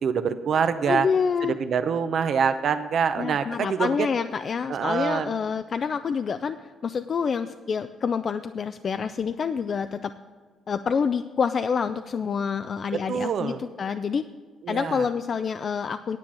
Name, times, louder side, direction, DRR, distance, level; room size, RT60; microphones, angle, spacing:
voice 1, 0.0-1.1 1.4-4.1 4.7-5.3 12.9-13.6 14.6-15.1, right 6 dB, 60° right, 10 dB, 0.6 m, -25 dB
voice 2, 0.9-1.6 3.2-10.1 10.7-14.3 14.7-16.2, left 6 dB, 50° left, 10 dB, 0.4 m, -27 dB
9.7 x 8.6 x 6.1 m, 1.5 s
cardioid pair, 90°, 0 cm